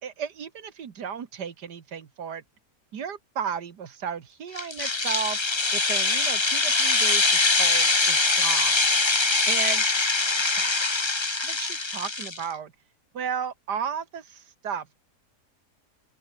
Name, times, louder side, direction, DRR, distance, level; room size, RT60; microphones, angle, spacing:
voice 1, 0.0-2.4 2.9-5.4 5.7-8.9 9.5-9.9 10.3-11.0 11.4-12.7 13.1-15.0, right 7 dB, 90° right, 2.2 m, -34 dB
sound 1, 4.6-12.4, left 3 dB, 20° left, 1.0 m, -23 dB
open air
omnidirectional pair, 1.7 m